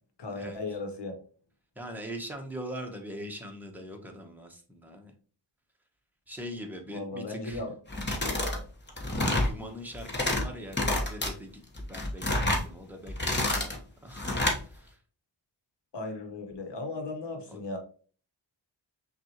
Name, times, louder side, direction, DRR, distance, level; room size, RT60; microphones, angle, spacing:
voice 1, 0.2-1.2 6.9-7.7 8.3-8.6 15.9-17.8, left 2 dB, 65° left, 5 dB, 1.1 m, -36 dB
voice 2, 1.8-5.1 6.3-7.6 9.4-14.3 14.6-15.0 17.5-17.6, equal, 5° right, 2 dB, 0.9 m, -42 dB
sound 1, 7.9-8.6 8.9-9.5 9.9-10.4 10.7-11.3 11.8-12.7 13.1-13.8 14.2-14.6, left 1 dB, 25° left, 1.1 m, -28 dB
5.7 x 2.4 x 2.9 m, 0.41 s
wide cardioid pair, 85°, 44 cm